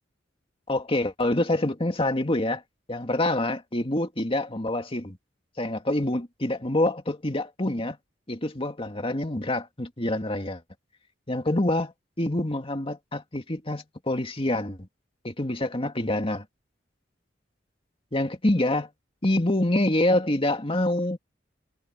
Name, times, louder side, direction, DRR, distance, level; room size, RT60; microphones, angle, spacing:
voice 1, 0.7-2.6 2.9-5.2 5.6-8.0 8.3-10.6 11.3-11.9 12.2-14.8 15.2-16.4 18.1-18.9 19.2-21.2, left 1 dB, 30° left, 2.2 m, -26 dB
head